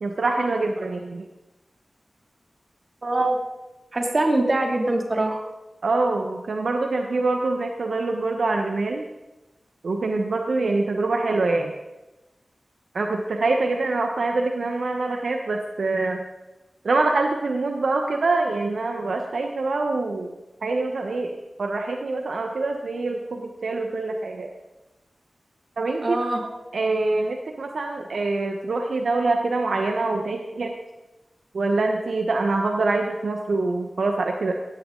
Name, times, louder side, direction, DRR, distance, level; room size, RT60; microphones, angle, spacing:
voice 1, 0.0-1.3 5.8-9.0 9.8-11.7 12.9-16.2 16.8-20.3 20.6-24.5 25.8-26.2 26.7-30.7 31.5-34.5, right 3 dB, 80° right, 3 dB, 1.1 m, -25 dB
voice 2, 3.0-3.4 3.9-5.4 26.0-26.4, right 2 dB, 50° right, 2 dB, 2.7 m, -23 dB
17.5 x 14.5 x 3.9 m, 1.0 s
wide cardioid pair, 65°, 0 cm